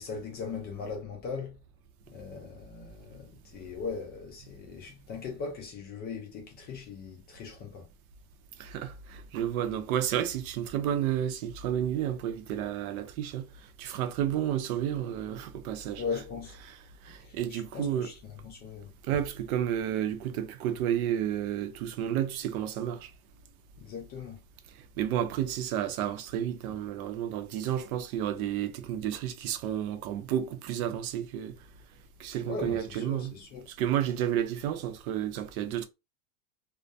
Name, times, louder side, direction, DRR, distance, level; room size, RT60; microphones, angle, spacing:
voice 1, 0.0-1.6 2.1-7.9 16.0-16.6 17.2-18.9 23.8-24.4 32.5-33.7, left 5 dB, 25° left, 0.3 m, -39 dB
voice 2, 8.6-13.5 13.8-16.0 16.6-16.8 17.0-18.1 19.0-23.1 25.0-31.5 32.2-33.3 33.7-35.9, right 10 dB, 70° right, 0.6 m, -31 dB
2.2 x 2.1 x 2.6 m
supercardioid pair, 130°, 44 cm